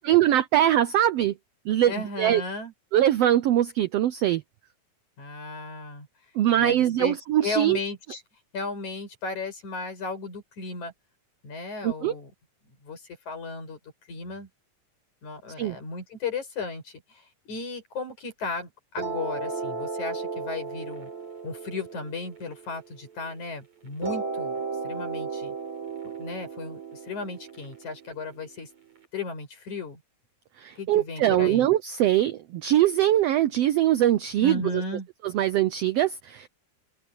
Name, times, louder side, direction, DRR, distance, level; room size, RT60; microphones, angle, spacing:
voice 1, 0.0-1.3 1.7-2.4 2.9-4.4 6.3-7.8 11.8-12.1 15.6-15.8 30.6-34.8 35.3-36.5, right 12 dB, 85° right, 1.3 m, -22 dB
voice 2, 1.9-2.7 5.2-6.1 6.5-7.2 7.4-8.2 8.5-10.9 11.4-12.3 12.8-13.8 14.1-14.5 15.2-21.1 21.4-24.6 24.8-25.6 26.0-28.7 29.1-30.0 30.8-31.7 34.4-35.1, left 3 dB, 65° left, 7.5 m, -35 dB
sound 1, 19.0-23.4 24.0-29.0, right 4 dB, 60° right, 9.1 m, -35 dB
open air
omnidirectional pair, 3.7 m